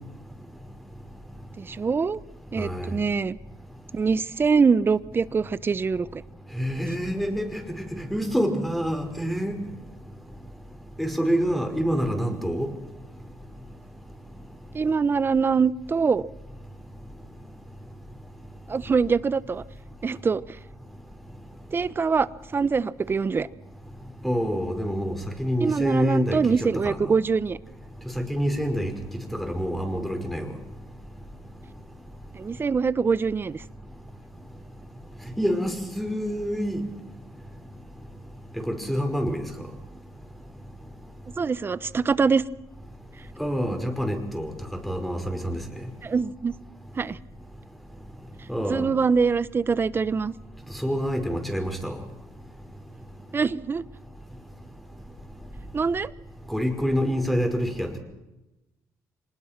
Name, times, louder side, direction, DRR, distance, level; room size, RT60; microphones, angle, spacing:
voice 1, 1.6-2.2 2.5-3.4 3.9-6.2 14.7-16.2 18.7-19.6 20.0-20.4 21.7-23.5 25.6-27.6 32.3-33.6 41.4-42.4 46.0-46.5 47.0-47.2 48.7-50.3 53.3-53.8 55.7-56.1, right 5 dB, 35° right, 17 dB, 1.0 m, -24 dB
voice 2, 2.6-2.9 6.5-9.6 11.0-12.7 24.2-27.0 28.2-28.9 29.3-30.5 35.4-36.8 38.6-39.4 43.4-44.5 44.9-45.6 48.5-48.9 50.8-52.0 56.5-58.0, equal, ahead, 4 dB, 5.3 m, -27 dB
26.0 x 20.0 x 6.0 m, 0.98 s
cardioid pair, 90°, 7 cm